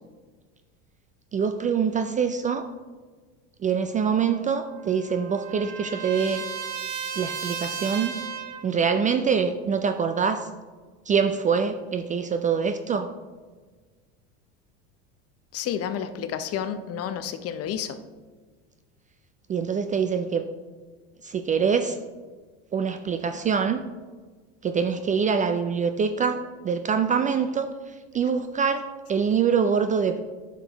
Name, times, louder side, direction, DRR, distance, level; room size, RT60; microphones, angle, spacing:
voice 1, 1.3-2.6 3.6-6.4 7.2-8.1 8.6-10.5 11.1-13.1 19.5-20.5 21.2-22.0 22.7-23.8 24.6-27.7 28.1-30.2, right 6 dB, 25° right, 8 dB, 0.3 m, -24 dB
Trumpet, 4.3-8.7, right 7 dB, 50° right, 1.0 m, -35 dB
voice 2, 15.5-18.0, left 9 dB, 45° left, 10 dB, 0.7 m, -30 dB
9.9 x 5.9 x 3.0 m, 1.4 s
supercardioid pair, 100°, 35 cm